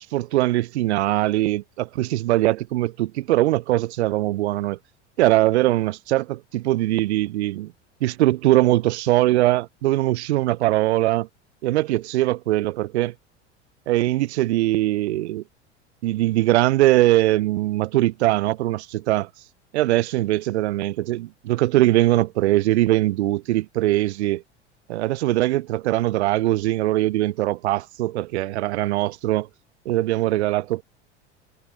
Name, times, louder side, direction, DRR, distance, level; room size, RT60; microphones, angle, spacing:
voice 1, 0.1-4.8 5.2-7.7 8.0-11.3 11.6-13.1 13.9-15.4 16.0-19.3 19.7-24.4 24.9-29.5 29.9-30.8, right 16 dB, 70° right, 0.5 m, -21 dB
figure-of-eight pair, 80°, 35 cm